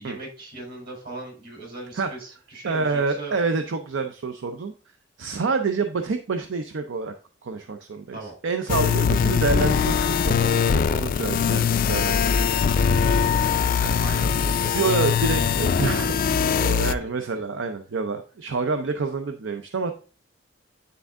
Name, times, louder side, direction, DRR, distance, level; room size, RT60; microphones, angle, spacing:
voice 1, 0.0-3.4 8.1-8.4 13.0-15.2 16.6-17.1, right 2 dB, 55° right, -1 dB, 3.7 m, -39 dB
voice 2, 2.6-4.7 5.2-7.1 7.4-8.2 8.4-12.4 14.7-19.9, right 4 dB, 75° right, 7 dB, 0.5 m, -27 dB
sound 1, 8.7-16.9, left 6 dB, 45° left, 0.3 m, -22 dB
9.5 x 3.5 x 3.6 m, 0.37 s
head